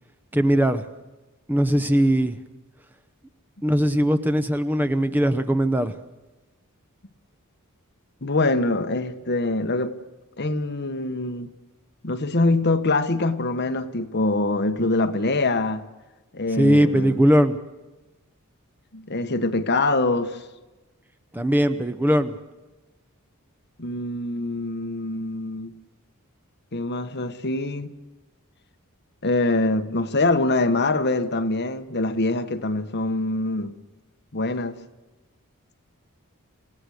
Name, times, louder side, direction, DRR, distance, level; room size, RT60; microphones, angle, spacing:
voice 1, 0.3-0.8 1.5-2.4 3.6-6.0 16.5-17.6 21.3-22.3, equal, 10° right, 0.8 m, -20 dB
voice 2, 8.2-10.0 10.4-11.5 12.0-15.9 16.3-17.2 18.9-20.4 23.8-25.7 26.7-27.9 29.2-33.7 34.3-34.7, left 2 dB, 50° left, 1.3 m, -24 dB
28.0 x 16.5 x 6.5 m
head